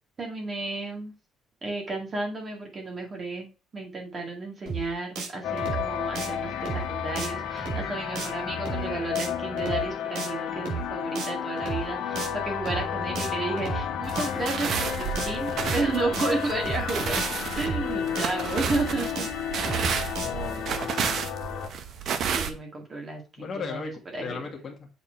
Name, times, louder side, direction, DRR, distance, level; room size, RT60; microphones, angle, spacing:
voice 1, 0.2-1.1 1.6-3.5 3.7-17.2 17.5-19.3 22.3-24.4, right 3 dB, 30° right, 1 dB, 1.9 m, -32 dB
sound 1, 4.7-4.9 5.2-5.3 5.6-5.9 6.1-6.3 6.7-6.9 7.2-7.3 7.6-7.9 8.2-8.3 8.7-8.9 9.1-9.3 9.6-9.9 10.2-10.3 10.7-10.9 11.2-11.3 11.6-11.9 12.2-12.3 12.7-12.9 13.1-13.3 13.6-13.9 14.2-14.3 14.7-14.9 15.1-15.3 15.6-15.9 16.2-16.3 16.7-16.9 17.2-17.3 17.6-17.9 18.1-18.3 18.7-18.9 19.2-19.3 19.6-19.9 20.1-20.3, right 5 dB, 85° right, 3.6 m, -33 dB
sound 2, 5.4-21.7, left 8 dB, 70° left, 1.6 m, -32 dB
sound 3, 14.1-22.5, right 7 dB, 50° right, 1.0 m, -31 dB
voice 2, 20.2-21.2 23.4-24.9, left 5 dB, 35° left, 1 dB, 2.0 m, -37 dB
7.1 x 4.4 x 4.5 m, 0.32 s
cardioid pair, 155°, 0 cm